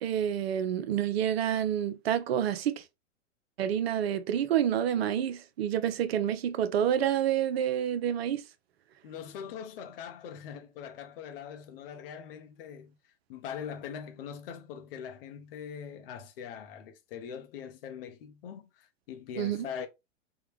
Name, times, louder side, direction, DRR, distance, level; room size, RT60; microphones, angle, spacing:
voice 1, 0.0-2.8 3.6-8.4 19.4-19.6, right 10 dB, 55° right, 0.5 m, -28 dB
voice 2, 9.0-13.0 13.3-19.9, left 8 dB, 50° left, 0.7 m, -42 dB
3.6 x 2.1 x 3.1 m
figure-of-eight pair, 105°, 37 cm